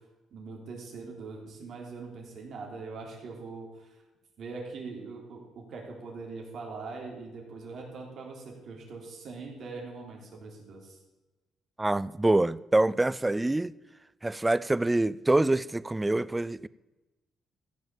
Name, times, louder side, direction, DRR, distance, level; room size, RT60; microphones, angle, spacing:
voice 1, 0.3-4.0 4.4-11.0, right 4 dB, 65° right, 3.5 m, -42 dB
voice 2, 11.8-13.7 14.2-16.7, right 2 dB, 15° right, 0.4 m, -25 dB
15.0 x 5.7 x 7.3 m
cardioid pair, 90°, 0 cm